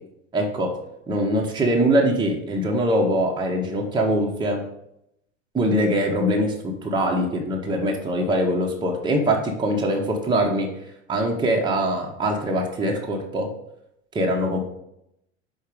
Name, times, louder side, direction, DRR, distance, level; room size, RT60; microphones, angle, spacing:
voice 1, 0.3-0.7 1.1-4.6 5.5-10.7 11.1-13.5 14.1-14.6, right 1 dB, 10° right, 0 dB, 1.0 m, -22 dB
5.6 x 4.4 x 5.0 m, 0.79 s
figure-of-eight pair, 80°, 36 cm